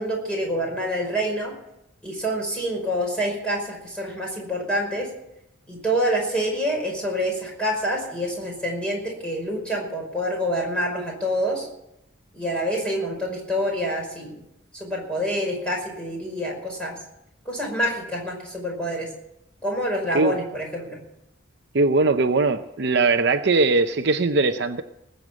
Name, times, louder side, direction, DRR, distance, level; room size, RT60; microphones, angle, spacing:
voice 1, 0.0-1.5 2.0-5.1 5.7-11.7 12.3-14.4 14.7-17.0 17.5-19.1 19.6-21.0, equal, 5° left, -1 dB, 5.4 m, -27 dB
voice 2, 21.7-24.8, right 3 dB, 55° right, 8 dB, 0.7 m, -20 dB
19.5 x 8.0 x 7.4 m, 0.82 s
head